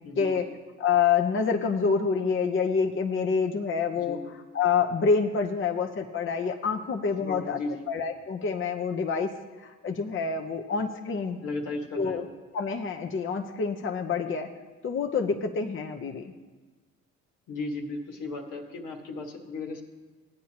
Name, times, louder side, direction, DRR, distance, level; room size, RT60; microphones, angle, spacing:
voice 1, 0.0-0.5 3.9-4.3 7.2-7.8 11.4-12.3 17.5-19.8, left 3 dB, 90° left, 1 dB, 1.8 m, -35 dB
voice 2, 0.8-7.6 7.9-9.3 9.6-11.4 11.9-12.3 12.5-14.5 14.8-16.2, left 5 dB, 40° left, 4 dB, 0.8 m, -27 dB
16.5 x 9.2 x 2.9 m, 1.3 s
cardioid pair, 90°, 30 cm